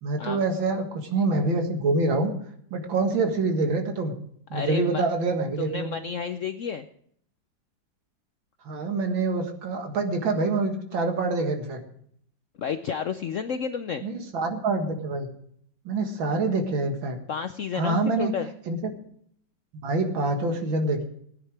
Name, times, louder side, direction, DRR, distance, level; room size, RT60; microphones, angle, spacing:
voice 1, 0.0-2.3 2.7-4.1 4.5-6.0 8.6-11.8 14.0-15.3 15.9-17.2 17.8-18.3 18.7-18.8 19.7-21.0, right 3 dB, 90° right, 5 dB, 2.5 m, -26 dB
voice 2, 4.5-5.0 5.6-6.9 12.6-14.0 17.3-18.5, left 7 dB, 70° left, 9 dB, 0.7 m, -31 dB
16.5 x 9.6 x 4.7 m, 0.66 s
omnidirectional pair, 2.1 m